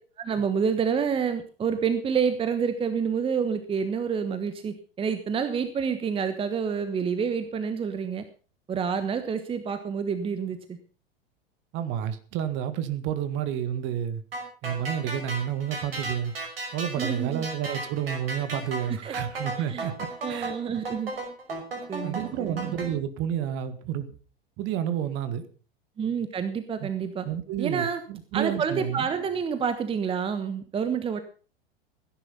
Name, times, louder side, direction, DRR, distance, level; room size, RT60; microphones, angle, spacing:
voice 1, 0.2-8.2 8.7-10.8 17.0-17.4 18.9-19.2 19.7-19.9 20.2-21.1 21.9-22.8 26.0-27.3 27.6-28.0 28.3-31.2, right 6 dB, 20° right, 1.2 m, -28 dB
voice 2, 11.7-14.2 14.6-16.3 16.7-20.5 22.0-24.1 24.6-25.5 26.8-26.9 27.2-29.1, right 10 dB, 40° right, 1.8 m, -30 dB
sound 1, 14.3-22.9, right 2 dB, 75° right, 5.7 m, -35 dB
16.5 x 10.5 x 5.7 m
figure-of-eight pair, 95°, 30 cm